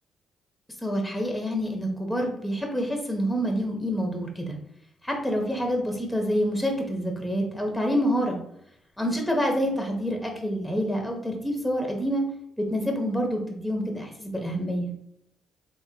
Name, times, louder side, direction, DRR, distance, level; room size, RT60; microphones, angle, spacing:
voice 1, 0.8-4.6 5.0-8.4 9.0-12.2 12.6-14.9, equal, 5° left, 1 dB, 0.8 m, -27 dB
3.6 x 2.7 x 2.8 m, 0.75 s
cardioid pair, 90°, 0 cm